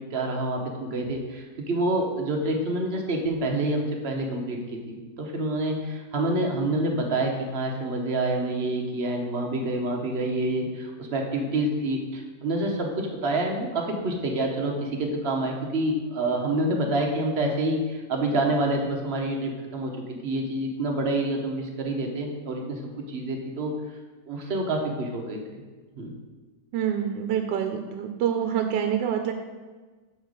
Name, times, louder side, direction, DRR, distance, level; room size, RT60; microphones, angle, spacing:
voice 1, 0.1-19.9 20.2-22.8 23.1-23.7 24.3-25.6 25.9-26.1, right 1 dB, 40° right, 1 dB, 1.0 m, -27 dB
voice 2, 26.7-29.3, right 9 dB, 80° right, 6 dB, 1.2 m, -26 dB
5.5 x 4.4 x 6.3 m, 1.3 s
omnidirectional pair, 1.9 m